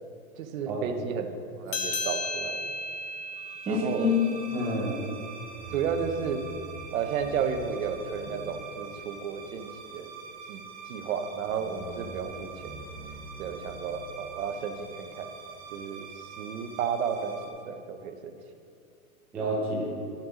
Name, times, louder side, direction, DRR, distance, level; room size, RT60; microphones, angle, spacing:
voice 1, 0.4-1.3 1.6-2.6 3.7-4.1 5.7-6.4 6.9-10.1 10.5-10.6 10.9-12.7 13.4-15.3 15.7-17.4 17.7-18.4, right 7 dB, 70° right, 7 dB, 1.0 m, -32 dB
sound 1, 1.7-6.6, left 2 dB, 30° left, 0.7 m, -36 dB
sound 2, 3.3-17.5, right 4 dB, 20° right, 0.9 m, -44 dB
voice 2, 3.7-5.0 19.3-19.9, left 3 dB, 5° right, -5 dB, 0.4 m, -27 dB
11.0 x 5.7 x 5.1 m, 2.5 s
supercardioid pair, 155°, 43 cm